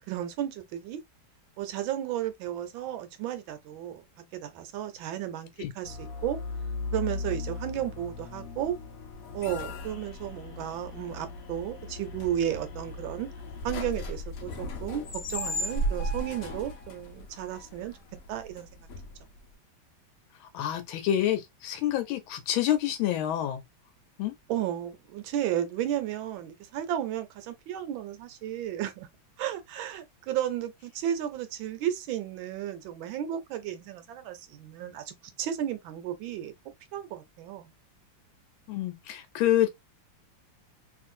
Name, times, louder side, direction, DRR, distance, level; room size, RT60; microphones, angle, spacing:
voice 1, 0.1-1.0 1.6-4.0 4.3-5.5 5.8-6.4 6.9-8.8 9.3-13.3 13.6-17.9 18.3-18.8 24.5-29.1 29.4-36.5 36.9-37.7, right 11 dB, 75° right, 1.4 m, -33 dB
sound 1, 5.8-19.5, left 1 dB, 65° left, 0.8 m, -36 dB
voice 2, 20.5-23.6 24.2-24.3 38.7-39.7, left 12 dB, 85° left, 1.4 m, -27 dB
3.1 x 2.5 x 2.5 m
omnidirectional pair, 2.2 m